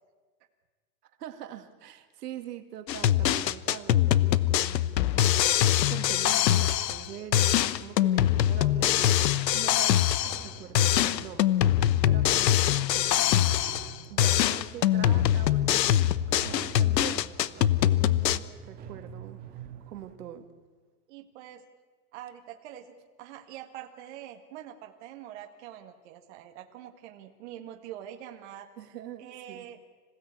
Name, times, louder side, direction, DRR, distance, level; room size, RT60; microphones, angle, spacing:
voice 1, 1.2-10.0 10.4-11.6 12.0-13.3 14.1-17.3 17.8-20.5 28.8-29.7, right 10 dB, 70° right, 7 dB, 2.2 m, -43 dB
sound 1, 2.9-7.1 7.3-10.5 10.7-13.9 14.2-18.4, left 12 dB, 85° left, 1.0 m, -23 dB
sound 2, 10.2-20.2, right 8 dB, 20° right, 1.4 m, -48 dB
voice 2, 21.1-21.6 22.1-28.7 29.2-29.8, right 11 dB, 45° right, 4 dB, 1.8 m, -45 dB
27.0 x 16.5 x 8.4 m, 1.4 s
supercardioid pair, 170°, 49 cm